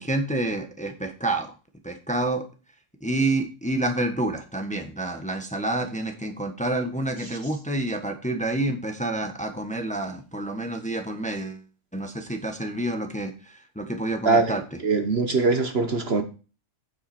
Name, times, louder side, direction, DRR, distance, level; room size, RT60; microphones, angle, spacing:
voice 1, 0.0-1.5 1.8-2.4 3.0-11.6 11.9-14.8, right 2 dB, 5° left, 5 dB, 1.3 m, -28 dB
voice 2, 14.8-16.2, right 4 dB, 50° right, 7 dB, 1.3 m, -21 dB
9.1 x 7.9 x 4.3 m, 0.34 s
omnidirectional pair, 1.5 m